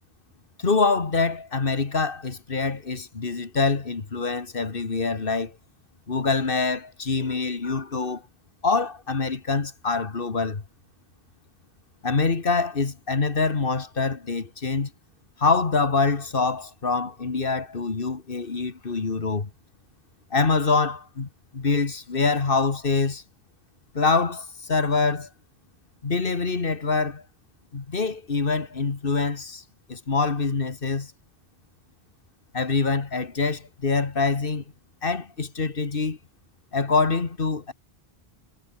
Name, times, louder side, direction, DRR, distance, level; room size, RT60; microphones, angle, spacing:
voice 1, 0.6-5.5 6.1-8.2 8.6-10.6 12.0-14.9 15.4-19.5 20.3-23.2 23.9-25.3 26.0-27.2 27.7-29.6 29.9-31.1 32.5-34.6 35.0-36.2 36.7-37.7, left 4 dB, 60° left, 1.9 m, -25 dB
omnidirectional pair, 1.0 m